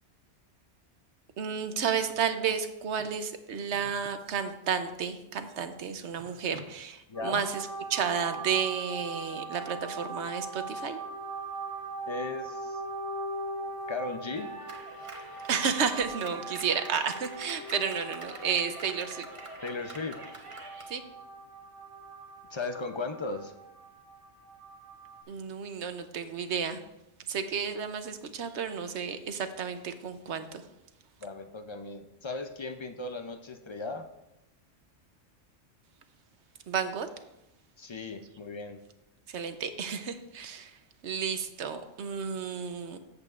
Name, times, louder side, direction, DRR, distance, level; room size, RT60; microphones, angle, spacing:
voice 1, 1.4-11.0 15.5-19.3 20.9-21.0 25.3-26.8 27.3-30.6 36.7-37.1 39.3-40.8 41.0-43.0, right 7 dB, 65° right, 9 dB, 1.0 m, -32 dB
sound 1, 7.1-25.2, right 3 dB, 80° left, 2.0 m, -41 dB
voice 2, 7.1-7.4 12.1-12.8 13.9-14.6 19.6-20.3 22.5-23.5 31.2-34.1 37.8-38.8, left 3 dB, 45° left, 7 dB, 0.3 m, -37 dB
Clapping, 14.4-20.9, right 2 dB, 30° right, 1.0 m, -46 dB
13.5 x 8.0 x 2.4 m, 0.91 s
omnidirectional pair, 1.3 m